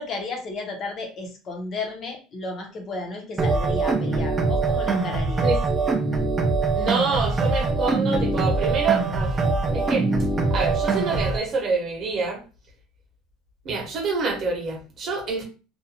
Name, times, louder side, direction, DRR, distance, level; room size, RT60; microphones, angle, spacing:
voice 1, 0.0-5.5, left 3 dB, 25° left, 3 dB, 0.6 m, -33 dB
sound 1, 3.4-11.4, right 3 dB, 10° right, 0.4 m, -23 dB
voice 2, 6.7-9.4 9.7-10.1 10.5-12.4 13.6-15.4, right 4 dB, 30° right, 0 dB, 0.8 m, -26 dB
2.4 x 2.2 x 2.8 m, 0.34 s
cardioid pair, 180°, 0 cm